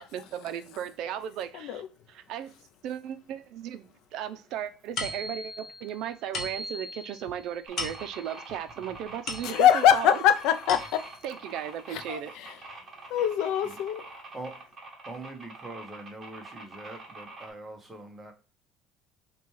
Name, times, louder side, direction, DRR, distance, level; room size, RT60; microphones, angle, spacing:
voice 1, 0.0-1.8 2.1-2.5 2.8-10.2 11.2-12.3, right 10 dB, 60° right, 0.5 m, -36 dB
voice 2, 1.5-1.9 9.4-11.1 11.9-12.6 13.1-14.1, left 10 dB, 70° left, 0.5 m, -23 dB
sound 1, 5.0-9.9 10.4-11.3, left 2 dB, 45° left, 1.1 m, -38 dB
sound 2, 7.7-17.5, right 3 dB, 25° right, 1.3 m, -45 dB
voice 3, 15.0-18.3, right 2 dB, 10° right, 0.8 m, -43 dB
5.8 x 2.3 x 3.1 m
cardioid pair, 155°, 0 cm